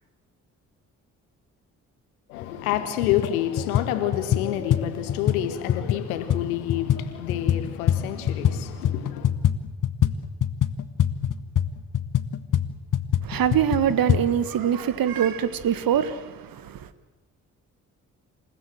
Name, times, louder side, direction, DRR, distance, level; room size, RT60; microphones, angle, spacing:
voice 1, 2.3-9.3, left 12 dB, 80° left, 1.8 m, -28 dB
sound 1, 2.4-2.5 3.0-3.3 3.6-8.6 8.8-14.2, left 9 dB, 45° left, 1.4 m, -24 dB
voice 2, 13.2-16.9, right 9 dB, 55° right, 1.5 m, -24 dB
28.0 x 16.0 x 7.8 m
figure-of-eight pair, 40°, 43 cm